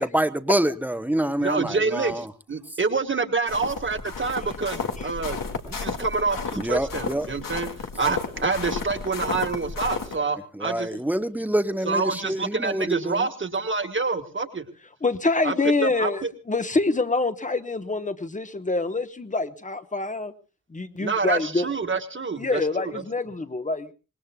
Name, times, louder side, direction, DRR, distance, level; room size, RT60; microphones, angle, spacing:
voice 1, 0.0-2.3 2.7-2.8 6.6-7.3 10.5-13.3, right 1 dB, 5° right, 0.9 m, -26 dB
voice 2, 1.4-5.4 5.6-7.7 8.0-10.9 11.9-14.6 15.4-15.5 15.8-16.1 21.0-22.6, right 4 dB, 35° right, 1.7 m, -27 dB
sound 1, 3.5-10.1, left 5 dB, 85° left, 2.1 m, -33 dB
voice 3, 5.0-5.4 10.2-10.3 15.0-20.3 20.7-21.7 22.4-23.9, left 3 dB, 25° left, 1.1 m, -26 dB
25.5 x 20.5 x 2.3 m
wide cardioid pair, 145°, 32 cm